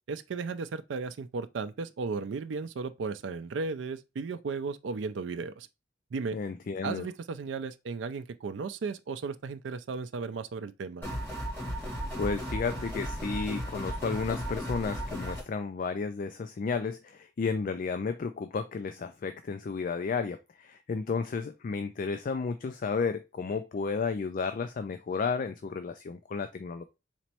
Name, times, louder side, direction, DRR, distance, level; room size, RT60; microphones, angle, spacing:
voice 1, 0.1-5.7 6.1-6.4 6.8-11.0, right 4 dB, 75° right, 0.4 m, -35 dB
voice 2, 6.3-7.1 12.2-26.8, left 5 dB, 45° left, 0.3 m, -32 dB
sound 1, 11.0-15.4, equal, 10° left, 1.6 m, -35 dB
4.3 x 3.0 x 2.8 m
head